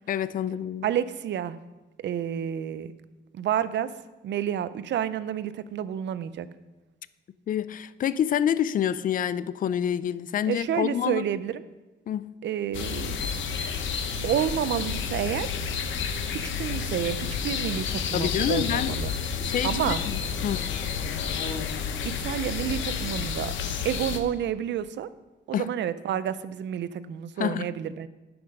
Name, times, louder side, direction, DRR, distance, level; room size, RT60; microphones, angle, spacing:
voice 1, 0.1-0.9 7.5-11.2 12.1-12.3 18.1-19.0 19.4-20.6 25.5-25.7 27.4-27.7, left 9 dB, 45° left, 16 dB, 0.4 m, -27 dB
voice 2, 0.8-1.6 2.0-2.9 3.3-3.9 4.2-6.5 10.5-11.6 12.4-13.2 14.2-15.6 16.3-19.1 19.6-20.0 22.1-23.5 23.8-25.1 25.5-28.1, right 10 dB, 70° right, 14 dB, 0.5 m, -29 dB
sound 1, 12.7-24.2, left 6 dB, 80° left, 0.8 m, -30 dB
10.0 x 6.0 x 5.3 m, 1.1 s
cardioid pair, 115°, 19 cm